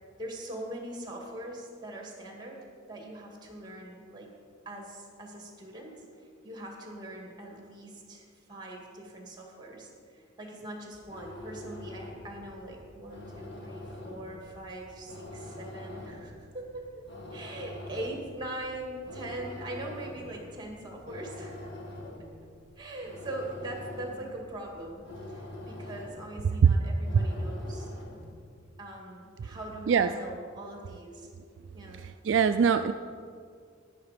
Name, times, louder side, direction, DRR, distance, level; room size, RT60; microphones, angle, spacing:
voice 1, 0.2-4.3 4.7-17.1 17.3-21.7 22.8-27.9 28.8-31.3 31.7-32.0, right 1 dB, 20° right, 1 dB, 2.1 m, -42 dB
sound 1, 10.8-28.4, left 1 dB, 55° left, 1.7 m, -44 dB
voice 2, 31.9-32.9, right 6 dB, 65° right, 10 dB, 0.3 m, -22 dB
10.5 x 10.5 x 5.1 m, 2.2 s
head